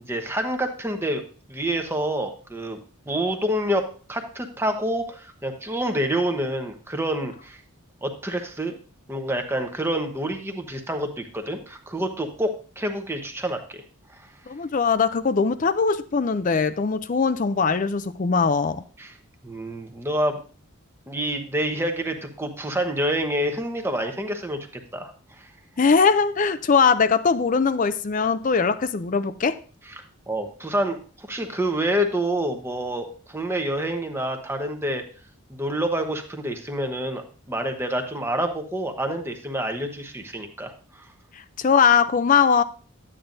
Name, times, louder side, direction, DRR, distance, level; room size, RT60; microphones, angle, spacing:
voice 1, 0.1-1.2 1.5-2.8 3.1-7.6 8.0-8.7 9.1-13.8 14.1-14.2 19.0-19.1 19.4-20.4 21.1-25.1 25.4-25.5 29.9-30.0 30.3-35.0 35.5-40.7, right 1 dB, 10° right, 0.9 m, -27 dB
voice 2, 14.5-18.8 25.8-29.6 41.6-42.6, left 5 dB, 35° left, 0.4 m, -21 dB
11.5 x 8.8 x 2.6 m
head